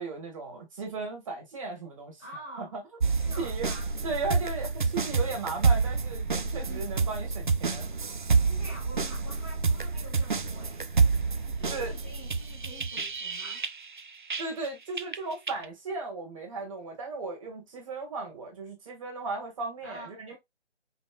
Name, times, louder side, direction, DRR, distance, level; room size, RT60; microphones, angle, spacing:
voice 1, 0.0-2.2 2.6-2.8 3.4-3.7 4.0-7.9 11.7-11.9 14.4-20.4, right 3 dB, 30° right, 1.6 m, -36 dB
voice 2, 2.2-2.7 3.2-3.9 6.6-6.9 8.4-10.8 11.3-13.6 19.8-20.2, right 1 dB, 15° left, 0.5 m, -47 dB
sound 1, 3.0-14.7 15.0-15.6, right 4 dB, 45° right, 0.4 m, -28 dB
5.3 x 3.0 x 2.4 m
figure-of-eight pair, 145°, 34 cm